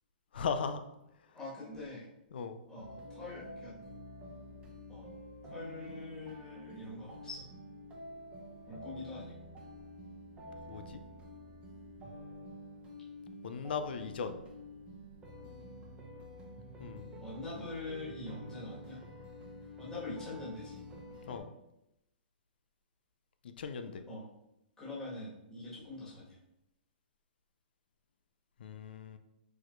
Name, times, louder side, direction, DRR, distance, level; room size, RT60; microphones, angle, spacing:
voice 1, 0.3-0.8 2.3-2.6 10.7-11.0 13.4-14.4 16.8-17.2 21.3-21.5 23.6-24.0 28.6-29.2, left 6 dB, 70° left, 9 dB, 0.5 m, -37 dB
voice 2, 1.3-2.1 2.7-3.7 4.9-5.1 5.5-7.4 8.7-9.3 17.2-19.0 19.8-20.8 24.1-24.3 24.8-26.4, left 2 dB, 10° left, -8 dB, 1.6 m, -44 dB
sound 1, 2.8-21.4, left 1 dB, 20° right, 1.0 m, -49 dB
4.8 x 4.3 x 2.6 m, 0.86 s
hypercardioid pair, 130°, 6 cm